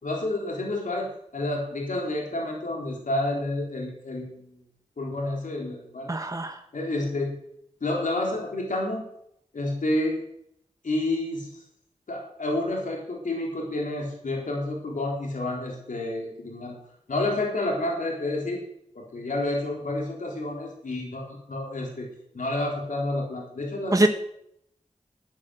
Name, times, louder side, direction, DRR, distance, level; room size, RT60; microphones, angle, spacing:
voice 1, 0.0-4.6 5.0-6.1 6.7-7.4 7.8-9.0 9.5-10.2 10.8-11.6 12.1-16.8 17.1-18.6 18.9-22.1 22.3-24.1, left 2 dB, 80° left, -1 dB, 3.6 m, -29 dB
voice 2, 6.1-6.6 23.9-24.1, right 2 dB, 25° right, 7 dB, 1.1 m, -22 dB
10.5 x 10.0 x 7.7 m, 0.73 s
cardioid pair, 50°, 13 cm